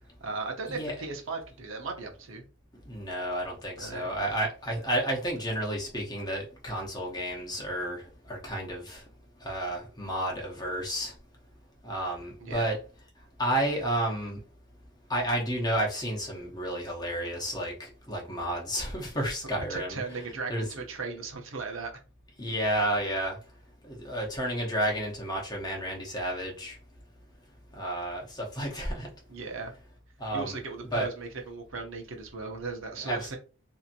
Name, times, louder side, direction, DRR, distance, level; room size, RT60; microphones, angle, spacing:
voice 1, 0.2-2.4 3.8-4.1 12.4-12.7 19.7-21.9 29.3-29.7 30.3-33.4, right 4 dB, 60° right, 2 dB, 0.8 m, -37 dB
voice 2, 2.9-8.0 8.3-9.0 9.4-11.1 11.8-12.8 13.4-14.4 15.1-20.0 20.5-20.7 22.4-23.4 23.9-26.8 27.8-29.1 30.2-30.6 30.9-31.1 33.0-33.4, right 1 dB, 20° left, -1 dB, 0.8 m, -31 dB
2.8 x 2.7 x 2.5 m, 0.35 s
head